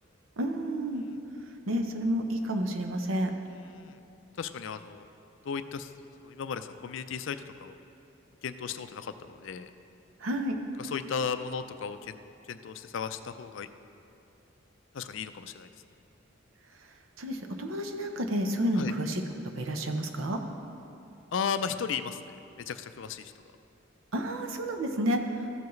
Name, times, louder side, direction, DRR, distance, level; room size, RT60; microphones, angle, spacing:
voice 1, 0.4-1.0 1.7-3.3 10.2-10.6 17.2-19.2 19.5-20.4 24.1-25.5, equal, 85° right, 5 dB, 0.8 m, -30 dB
voice 2, 3.5-4.0 4.4-5.1 5.4-5.9 6.2-7.8 8.4-9.7 10.8-12.2 12.5-13.7 14.9-15.7 18.8-18.9 21.3-22.4 22.7-23.3, left 6 dB, 70° left, 11 dB, 0.4 m, -35 dB
14.0 x 7.0 x 3.2 m, 2.7 s
head